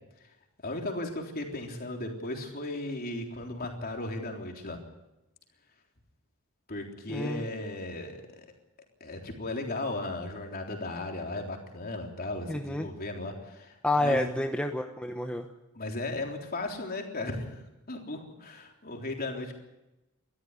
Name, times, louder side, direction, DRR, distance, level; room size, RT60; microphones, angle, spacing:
voice 1, 0.6-4.8 6.7-8.2 9.0-14.3 15.7-19.5, left 2 dB, 45° left, 2 dB, 3.7 m, -36 dB
voice 2, 7.1-7.4 12.5-12.9 13.8-15.5, left 1 dB, 5° left, 4 dB, 1.0 m, -29 dB
22.0 x 13.5 x 9.8 m, 0.96 s
head